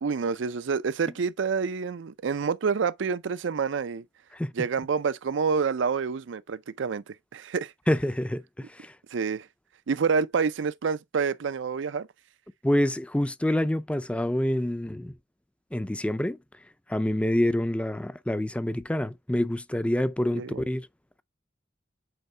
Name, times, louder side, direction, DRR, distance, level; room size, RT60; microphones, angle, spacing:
voice 1, 0.0-4.0 4.5-7.7 9.1-9.5 9.9-12.1 20.4-20.7, right 5 dB, 80° right, 0.5 m, -28 dB
voice 2, 7.9-8.9 12.6-15.1 15.7-16.4 16.9-20.9, left 1 dB, 5° left, 0.4 m, -27 dB
8.0 x 4.4 x 3.2 m
head